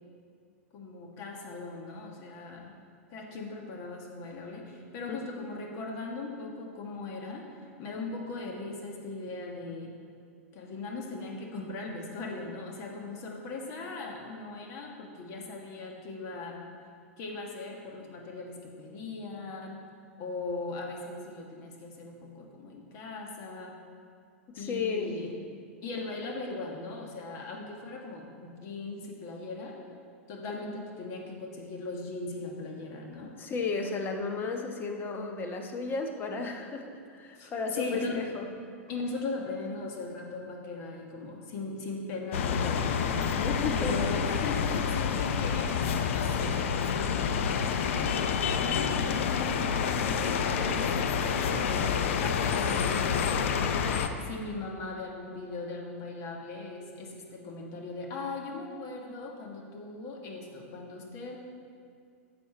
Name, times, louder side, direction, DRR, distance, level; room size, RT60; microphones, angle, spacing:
voice 1, 0.7-2.7 3.1-7.4 7.8-9.9 10.5-16.6 17.2-19.8 20.2-23.8 24.6-25.3 25.8-29.8 30.3-33.3 37.4-38.2 38.9-43.2 43.7-45.8 46.1-48.2 48.6-53.6 54.2-61.4, left 3 dB, 45° left, 0 dB, 1.7 m, -39 dB
voice 2, 24.5-25.2 33.4-38.5 43.4-44.0, left 4 dB, 25° left, 4 dB, 1.1 m, -34 dB
sound 1, 42.3-54.1, left 6 dB, 65° left, 0.7 m, -28 dB
10.5 x 6.9 x 4.4 m, 2.2 s
hypercardioid pair, 105°, 7 cm